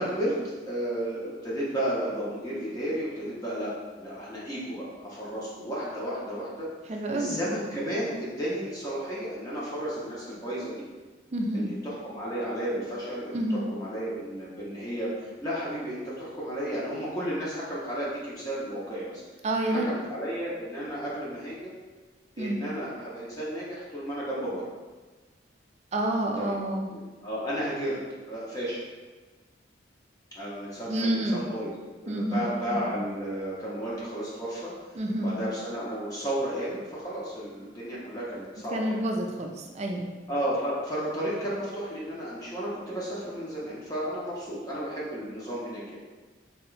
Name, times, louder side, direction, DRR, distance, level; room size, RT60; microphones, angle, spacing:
voice 1, 0.0-3.7 4.0-6.7 7.1-10.9 11.5-19.2 19.7-21.7 22.4-24.6 26.4-26.5 26.9-28.0 28.2-28.8 30.3-31.7 32.0-34.7 35.2-39.0 40.3-46.0, equal, 20° left, -7 dB, 0.7 m, -33 dB
voice 2, 6.9-7.4 11.3-11.7 13.3-13.7 19.4-19.9 22.4-22.6 25.9-26.9 30.9-31.5 32.1-33.0 35.0-35.4 38.7-40.1, right 1 dB, 35° right, 2 dB, 0.4 m, -29 dB
3.4 x 2.9 x 3.1 m, 1.3 s
head